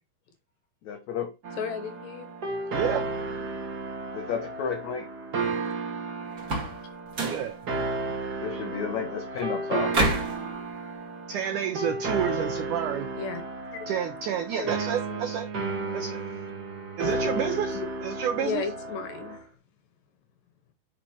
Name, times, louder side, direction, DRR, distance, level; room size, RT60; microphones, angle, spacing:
voice 1, 0.8-1.3 4.1-5.1 8.4-9.9, left 7 dB, 90° left, 1.6 m, -32 dB
sound 1, 1.4-19.4, right 3 dB, 55° right, 1.0 m, -33 dB
voice 2, 1.6-2.3 13.1-13.4 13.7-13.9 14.6-14.8 17.7-17.9 18.4-19.5, left 6 dB, 70° left, 2.4 m, -34 dB
voice 3, 2.7-3.0 7.2-7.6 11.3-13.1 13.9-15.5 15.9-16.2 17.0-18.6, right 9 dB, 90° right, 1.7 m, -30 dB
sound 2, 6.4-6.8 7.1-7.5 9.9-10.4, right 2 dB, 35° right, 1.5 m, -26 dB
9.1 x 5.8 x 3.0 m
omnidirectional pair, 4.7 m